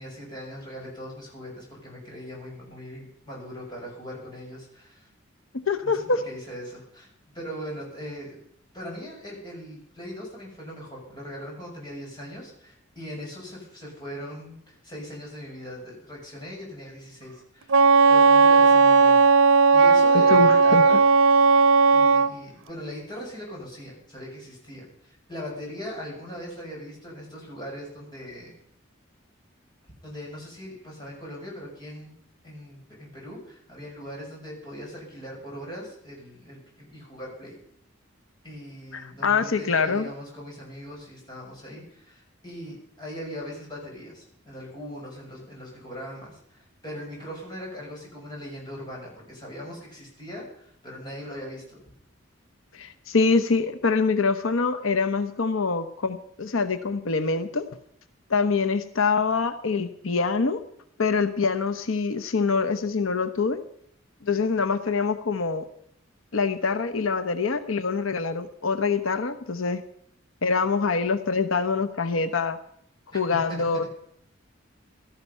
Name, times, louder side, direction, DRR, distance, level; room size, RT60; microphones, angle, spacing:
voice 1, 0.0-5.1 5.8-6.0 6.2-8.4 8.7-17.8 18.1-19.2 19.7-21.0 21.9-28.5 30.0-32.1 32.4-37.6 38.4-51.8 73.5-73.6, equal, 20° left, -3 dB, 6.6 m, -40 dB
voice 2, 5.5-6.2 20.3-20.8 38.9-40.1 52.7-57.7 58.3-60.6 61.0-63.6 64.2-65.6 66.3-69.8 70.4-72.6 73.1-73.8, left 4 dB, 90° left, 10 dB, 0.9 m, -25 dB
Wind instrument woodwind instrument, 17.7-22.3, right 4 dB, 85° right, 0.8 m, -16 dB
16.5 x 13.0 x 5.5 m, 0.71 s
head